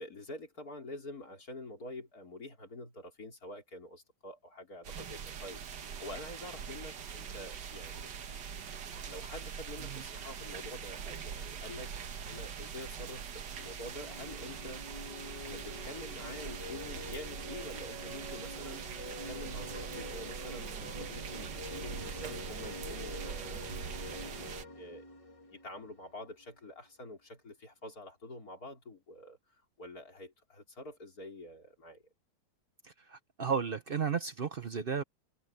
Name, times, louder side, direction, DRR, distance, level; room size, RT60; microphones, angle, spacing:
voice 1, 0.0-8.1 9.1-11.9 12.3-15.0 15.4-23.7 24.1-25.1 25.4-29.4 29.8-32.0, left 2 dB, 55° left, 5.0 m, -47 dB
sound 1, 4.8-24.7, right 7 dB, 75° right, 1.9 m, -43 dB
sound 2, 13.7-26.3, left 1 dB, 20° left, 2.9 m, -46 dB
voice 2, 32.8-35.0, right 6 dB, 55° right, 0.6 m, -34 dB
omnidirectional pair, 1.9 m